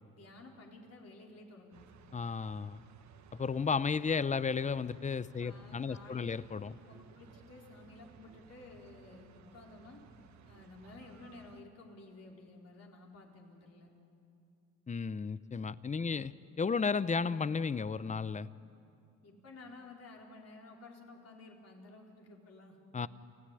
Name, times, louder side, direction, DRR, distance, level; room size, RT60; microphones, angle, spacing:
voice 1, 0.1-2.0 5.4-6.4 6.9-10.0 10.4-13.9 16.0-16.2 19.2-22.8, left 2 dB, 55° left, -1 dB, 4.4 m, -53 dB
sound 1, 1.7-11.6, right 6 dB, 65° right, 1.4 m, -59 dB
voice 2, 2.1-2.8 3.3-6.7 14.9-16.3 16.6-18.5 22.9-23.1, left 5 dB, 25° left, 17 dB, 0.6 m, -33 dB
29.5 x 14.5 x 10.0 m, 2.6 s
cardioid pair, 90°, 30 cm